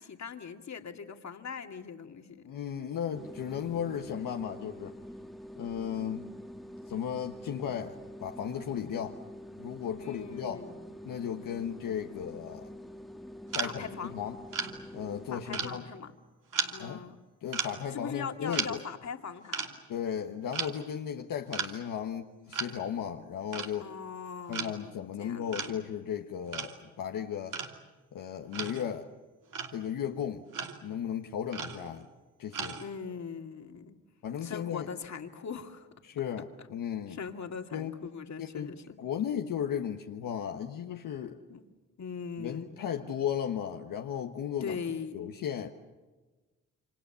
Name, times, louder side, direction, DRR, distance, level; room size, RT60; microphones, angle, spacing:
voice 1, 0.0-2.5 10.0-10.9 13.6-14.2 15.3-16.1 16.7-17.2 17.9-19.7 23.8-25.7 32.8-34.0 34.4-35.9 37.1-39.0 41.5-41.6 42.0-42.7 44.6-45.2, left 6 dB, 55° left, 5 dB, 2.4 m, -41 dB
voice 2, 2.4-5.0 5.6-6.3 6.9-9.2 9.6-10.6 11.0-12.7 13.5-14.4 14.9-15.9 16.8-17.0 17.4-18.8 19.9-23.9 24.5-27.6 28.1-29.1 29.7-30.4 30.8-32.1 32.4-32.8 34.2-34.9 36.0-37.2 37.7-37.9 38.4-38.7 39.0-41.4 42.4-44.8 45.1-45.7, left 8 dB, 80° left, 3 dB, 1.4 m, -35 dB
sound 1, 3.1-15.8, equal, ahead, 1.6 m, -46 dB
sound 2, 13.5-13.8 14.5-14.8 15.5-16.1 16.5-16.9 17.5-17.8 18.5-18.8 19.5-19.7 20.5-20.8 21.5-21.7 22.5-22.7 23.5-23.8 24.5-24.8 25.5-25.9 26.5-26.8 27.5-27.8 28.5-29.0 29.5-29.8 30.5-30.9 31.5-32.1 32.5-33.0, right 6 dB, 70° right, 2.9 m, -36 dB
28.5 x 25.5 x 7.1 m, 1.3 s
cardioid pair, 60°, 33 cm